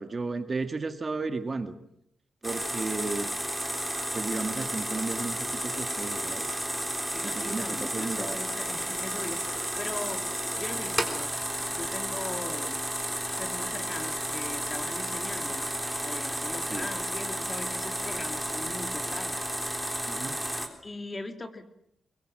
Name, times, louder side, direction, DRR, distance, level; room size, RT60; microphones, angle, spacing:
voice 1, 0.0-1.7 2.4-3.3 4.1-6.5 7.2-8.5 16.7-16.9 20.1-20.3, right 3 dB, 35° right, 8 dB, 1.8 m, -33 dB
sound 1, 2.4-20.7, right 1 dB, ahead, 3.6 m, -32 dB
voice 2, 7.1-11.3 11.7-12.8 13.4-15.7 16.0-19.3 19.6-20.2 20.8-21.7, left 2 dB, 25° left, 7 dB, 2.7 m, -40 dB
23.0 x 22.5 x 7.7 m, 0.76 s
cardioid pair, 110°, 0 cm